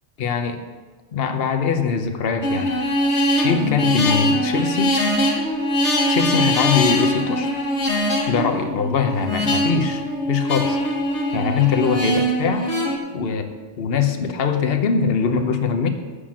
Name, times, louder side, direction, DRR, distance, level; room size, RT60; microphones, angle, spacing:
voice 1, 0.2-0.6 1.1-2.7 3.3-4.9 6.1-7.5 8.3-10.0 10.3-10.8 11.3-12.7 13.1-13.5 13.8-15.9, left 6 dB, 55° left, 7 dB, 1.0 m, -22 dB
sound 1, 2.4-13.0, equal, 70° left, 1.8 m, -22 dB
7.5 x 6.6 x 7.5 m, 1.4 s
omnidirectional pair, 1.2 m